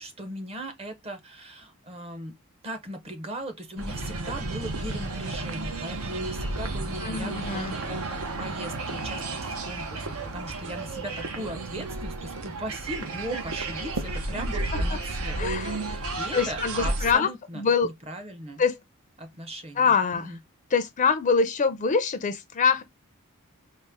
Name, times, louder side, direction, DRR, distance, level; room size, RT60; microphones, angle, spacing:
voice 1, 0.0-2.4 2.6-18.6 19.2-19.9 20.1-20.4, right 1 dB, 30° right, 0.7 m, -38 dB
sound 1, 3.8-17.1, right 2 dB, 80° right, 0.7 m, -32 dB
voice 2, 7.0-7.7 14.7-15.0 15.4-15.7 16.3-17.3 17.5-17.9 18.6-18.8 19.8-20.3 20.7-22.8, left 5 dB, 35° left, 0.4 m, -24 dB
4.1 x 2.0 x 3.4 m
head